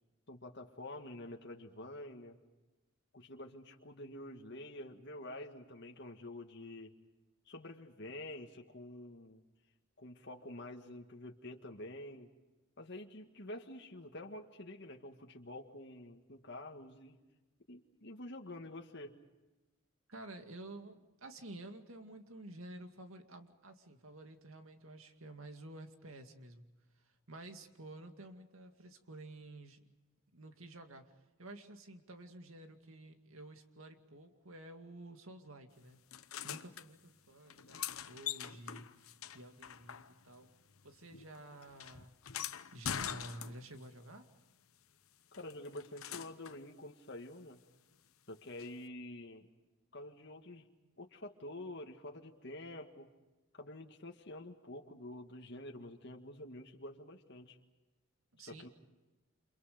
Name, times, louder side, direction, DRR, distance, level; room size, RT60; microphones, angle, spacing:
voice 1, 0.3-2.4 3.1-6.9 7.5-9.4 10.0-12.3 12.8-17.2 17.7-19.2 45.4-47.6 48.3-49.5 49.9-50.7 51.0-53.1 53.5-57.6 58.4-58.7, left 1 dB, 55° left, 2 dB, 1.9 m, -48 dB
voice 2, 20.1-29.8 30.3-31.1 31.4-36.0 36.4-40.5 40.8-42.1 42.7-44.3 58.3-58.7, right 1 dB, 75° right, 6 dB, 2.2 m, -51 dB
sound 1, 36.1-36.9 37.5-40.4 40.7-43.9 45.3-46.6 48.6-48.7, left 9 dB, 85° left, 1.0 m, -44 dB
29.5 x 27.5 x 5.2 m, 1.1 s
head